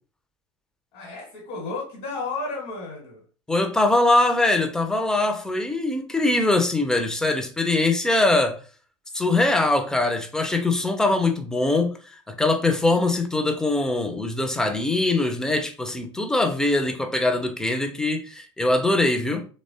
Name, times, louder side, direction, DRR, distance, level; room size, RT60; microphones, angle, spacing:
voice 1, 0.9-3.2, left 3 dB, 50° left, 1.1 m, -33 dB
voice 2, 3.5-8.6 9.1-11.9 12.3-19.5, left 2 dB, 5° left, 0.4 m, -22 dB
3.0 x 2.1 x 2.7 m
figure-of-eight pair, 75°, 15 cm